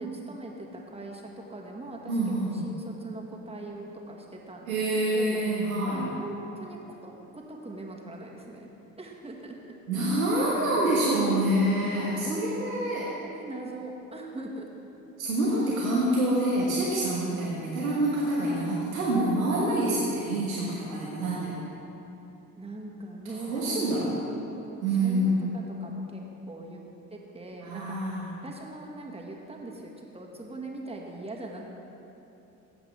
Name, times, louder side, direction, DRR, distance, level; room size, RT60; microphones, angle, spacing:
voice 1, 0.0-5.4 5.9-8.7 9.0-9.7 12.2-12.5 13.2-14.8 17.3-17.7 19.7-20.2 21.0-21.1 22.6-26.8 27.1-28.0 28.4-31.7, right 2 dB, 15° right, -1 dB, 1.8 m, -41 dB
voice 2, 2.1-2.6 4.7-6.0 9.9-13.1 15.2-21.7 23.5-24.1 24.8-25.4 27.6-28.3, right 1 dB, 85° right, -6 dB, 1.3 m, -26 dB
15.5 x 7.9 x 3.5 m, 2.9 s
figure-of-eight pair, 55°, 41 cm